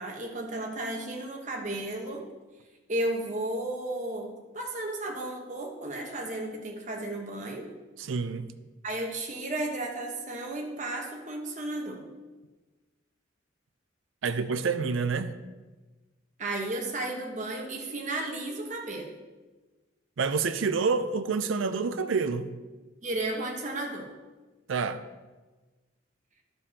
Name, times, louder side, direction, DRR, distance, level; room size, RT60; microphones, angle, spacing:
voice 1, 0.0-2.2 2.9-7.7 8.8-12.0 16.4-19.1 23.0-24.1, right 2 dB, 40° right, 1 dB, 1.1 m, -33 dB
voice 2, 8.0-8.5 14.2-15.4 20.2-22.5 24.7-25.0, right 5 dB, 85° right, 11 dB, 0.5 m, -28 dB
10.5 x 6.9 x 2.8 m, 1.2 s
head